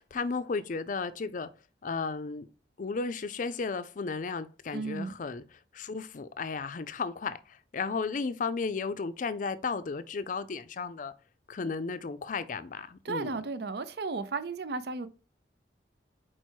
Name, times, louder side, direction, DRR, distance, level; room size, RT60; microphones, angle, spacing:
voice 1, 0.0-1.5 1.8-2.5 2.8-11.1 11.5-13.4, left 4 dB, 50° left, 0.5 m, -34 dB
voice 2, 4.7-5.1 13.0-15.1, right 4 dB, 65° right, 0.6 m, -34 dB
4.6 x 4.6 x 4.5 m
head